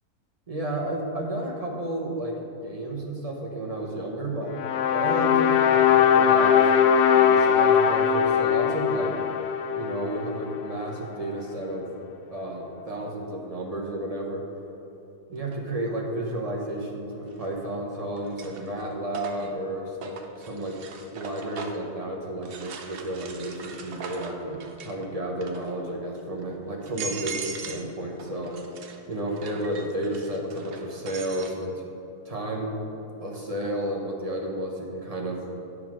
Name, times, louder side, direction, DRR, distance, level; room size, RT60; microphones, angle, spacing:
voice 1, 0.5-2.3 2.6-4.6 4.9-6.8 7.1-9.1 9.7-11.9 12.3-14.4 15.3-20.7 21.1-28.5 29.1-31.8 32.2-32.7 33.2-35.4, right 1 dB, 30° right, -2 dB, 0.8 m, -32 dB
sound 1, 4.5-10.8, left 8 dB, 80° left, 1.1 m, -21 dB
sound 2, 15.5-15.6 17.3-17.8 18.2-21.9 22.4-25.0 25.3-25.8 26.4-26.5 26.8-27.9 28.2-31.5, right 5 dB, 60° right, 0.6 m, -40 dB
9.3 x 4.8 x 6.0 m, 2.9 s
omnidirectional pair, 1.7 m